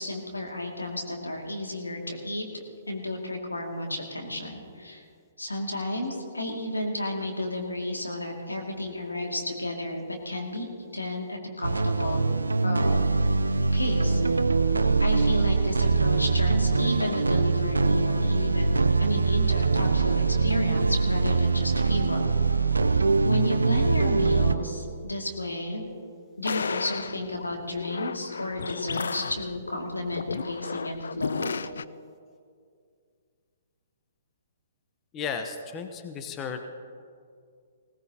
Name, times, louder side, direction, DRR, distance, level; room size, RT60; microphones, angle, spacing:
voice 1, 0.0-2.4 2.9-5.0 5.4-10.7 10.9-12.2 12.6-13.0 13.7-14.4 15.0-22.3 23.2-25.9 26.4-31.5, left 1 dB, 85° left, 1 dB, 2.4 m, -32 dB
sound 1, 11.6-24.6, right 4 dB, 80° right, 0.6 m, -23 dB
sound 2, 26.4-31.8, left 5 dB, 65° left, 0.3 m, -34 dB
voice 2, 35.1-36.6, left 6 dB, 25° left, 6 dB, 1.0 m, -34 dB
21.0 x 17.5 x 2.9 m, 2.3 s
figure-of-eight pair, 120°, 0 cm